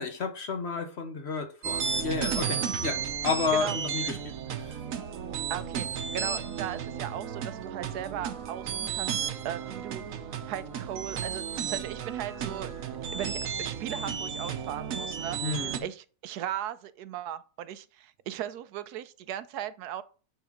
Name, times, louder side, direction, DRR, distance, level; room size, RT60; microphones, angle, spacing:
voice 1, 0.0-4.8 15.4-15.9, left 5 dB, 50° left, 1.1 m, -32 dB
sound 1, 1.6-15.8, right 7 dB, 65° right, 1.1 m, -33 dB
voice 2, 5.5-10.0 10.5-12.7 13.1-15.4 15.8-20.0, right 10 dB, 85° right, 1.2 m, -37 dB
9.3 x 3.7 x 5.0 m
omnidirectional pair, 1.7 m